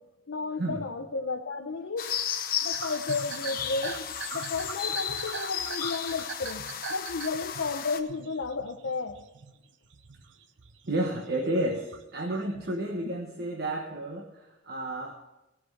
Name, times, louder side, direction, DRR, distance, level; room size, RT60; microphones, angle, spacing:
voice 1, 0.3-2.1 2.6-4.1 4.3-6.6 6.9-9.2, left 4 dB, 90° left, 3 dB, 0.7 m, -33 dB
sound 1, 2.0-8.0, left 9 dB, 50° left, 0.8 m, -34 dB
sound 2, 2.7-9.5 9.8-10.9 11.3-12.7, right 5 dB, 70° right, 0.7 m, -42 dB
voice 2, 10.9-15.1, right 1 dB, 55° right, 1 dB, 1.2 m, -31 dB
16.5 x 6.1 x 6.5 m, 0.99 s
head